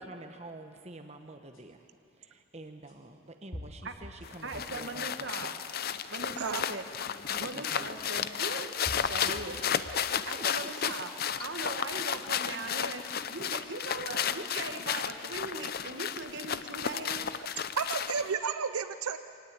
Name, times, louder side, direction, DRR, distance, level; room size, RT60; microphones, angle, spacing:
voice 1, 0.0-1.9 2.2-5.3 7.3-8.0 8.7-9.4 9.9-11.2, right 2 dB, 30° right, 6 dB, 1.1 m, -48 dB
sound 1, 1.5-1.6 2.9-3.0 3.5-4.8 5.3-5.9 6.9-7.0 8.2-8.3 8.8-10.2 10.7-11.2, left 1 dB, 60° left, 3.7 m, -45 dB
sound 2, 4.2-18.3, left 8 dB, 45° left, 0.6 m, -33 dB
voice 2, 4.4-5.6 6.1-6.9 7.4-8.7 9.0-9.6 10.3-11.1 11.4-17.3, right 3 dB, 55° right, 6 dB, 1.8 m, -39 dB
voice 3, 6.4-6.7 17.8-19.2, right 6 dB, 90° right, 10 dB, 0.7 m, -32 dB
24.5 x 18.5 x 8.7 m, 2.4 s
head